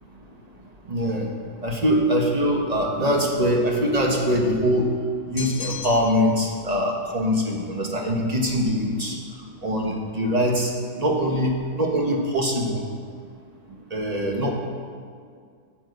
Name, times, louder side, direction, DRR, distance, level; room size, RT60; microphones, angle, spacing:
voice 1, 0.9-1.3 1.6-4.8 5.3-9.1 9.6-10.7 11.0-12.8 13.9-14.5, equal, 25° right, 0 dB, 1.5 m, -23 dB
sound 1, 5.4-6.4, left 7 dB, 85° left, 0.3 m, -35 dB
9.0 x 7.6 x 8.0 m, 2.1 s
omnidirectional pair, 1.6 m